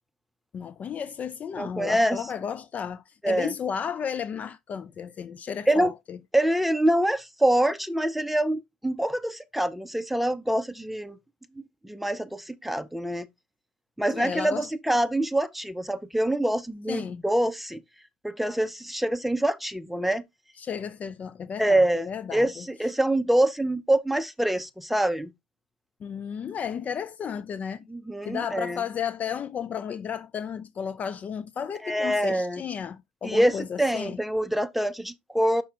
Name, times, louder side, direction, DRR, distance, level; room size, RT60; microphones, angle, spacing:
voice 1, 0.5-6.2 14.1-14.7 16.9-17.2 20.6-22.7 26.0-27.9 28.2-34.2, left 7 dB, 30° left, 0.5 m, -33 dB
voice 2, 1.6-2.2 3.2-3.5 5.7-5.9 6.3-11.2 11.8-13.3 14.0-17.8 18.2-20.2 21.6-25.3 27.9-28.8 31.8-32.6 33.2-35.6, right 1 dB, ahead, 0.7 m, -25 dB
5.8 x 5.2 x 3.4 m
figure-of-eight pair, 75°, 5 cm